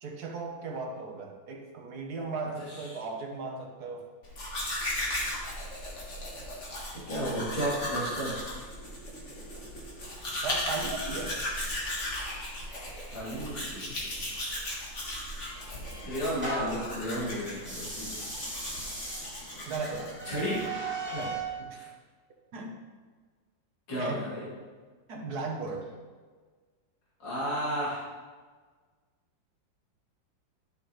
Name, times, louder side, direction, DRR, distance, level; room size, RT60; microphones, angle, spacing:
voice 1, 0.0-4.1 10.4-11.4 19.6-20.1 21.1-21.4 21.7-21.8 22.5-22.7 24.0-24.3 25.1-25.9, right 3 dB, 55° right, 2 dB, 1.4 m, -36 dB
voice 2, 2.7-3.0 6.9-8.4 13.1-14.2 16.0-18.2 20.2-20.6 21.7-21.9 23.9-24.5 27.2-28.0, equal, 65° left, -9 dB, 3.4 m, -33 dB
Domestic sounds home sounds, 4.2-20.3, left 1 dB, 40° left, 1.8 m, -36 dB
sound 1, 15.0-16.9 17.6-21.5, right 2 dB, 5° right, 2.5 m, -38 dB
11.5 x 6.8 x 3.2 m, 1.5 s
omnidirectional pair, 2.1 m